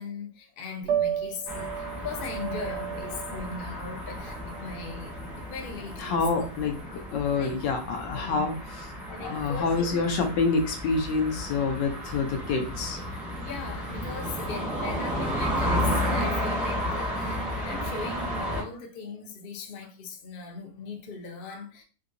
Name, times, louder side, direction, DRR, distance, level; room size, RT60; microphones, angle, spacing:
voice 1, 0.0-6.5 7.3-7.5 8.1-8.6 9.1-10.0 13.3-21.8, left 4 dB, 55° left, 0.6 m, -39 dB
Piano, 0.8-6.8, right 9 dB, 75° right, 1.2 m, -34 dB
sound 1, 1.5-18.6, equal, ahead, 0.5 m, -33 dB
voice 2, 6.0-8.5 9.2-13.0, left 4 dB, 80° left, 1.4 m, -27 dB
3.9 x 2.7 x 2.5 m
omnidirectional pair, 1.9 m